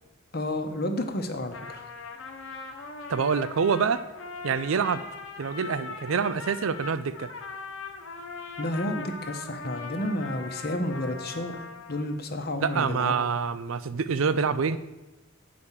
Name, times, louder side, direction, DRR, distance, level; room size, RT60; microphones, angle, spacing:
voice 1, 0.3-1.9 8.6-13.2, left 1 dB, 50° left, 1.0 m, -31 dB
Trumpet, 1.3-12.2, left 4 dB, 70° left, 1.1 m, -40 dB
voice 2, 3.1-4.0 4.4-5.0 5.4-7.3 12.6-14.8, right 6 dB, 80° right, 0.5 m, -26 dB
8.1 x 5.2 x 7.3 m
head